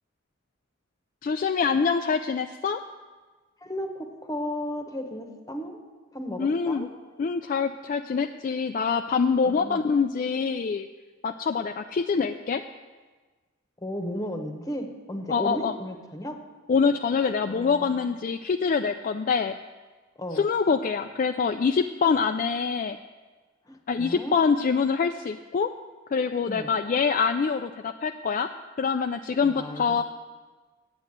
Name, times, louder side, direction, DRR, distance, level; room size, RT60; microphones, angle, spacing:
voice 1, 1.2-2.8 6.4-6.9 7.2-10.9 11.2-12.6 15.3-15.7 16.7-19.6 20.4-23.0 23.9-25.7 26.1-28.5 28.8-30.0, left 5 dB, 40° left, 6 dB, 0.3 m, -25 dB
voice 2, 3.6-5.8 6.1-6.9 9.4-9.8 13.8-16.3 17.5-18.1 20.2-20.5 23.6-24.4 26.5-26.7 29.4-30.0, equal, 20° left, 5 dB, 1.0 m, -35 dB
9.1 x 7.9 x 7.9 m, 1.3 s
head